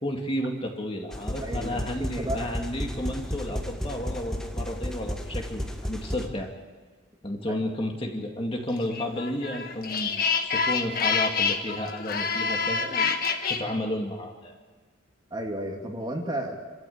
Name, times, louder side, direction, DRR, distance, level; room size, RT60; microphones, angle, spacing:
voice 1, 0.0-6.6 7.2-13.2 13.5-14.5, left 1 dB, 25° left, 1 dB, 2.3 m, -32 dB
sound 1, 1.1-6.3, equal, 5° left, 1.4 m, -33 dB
voice 2, 1.4-1.8 2.2-2.5 7.5-7.6 15.3-16.6, right 1 dB, 20° right, 1 dB, 2.4 m, -32 dB
sound 2, 8.9-13.6, left 5 dB, 45° left, 1.5 m, -27 dB
27.5 x 14.0 x 8.6 m, 1.4 s
head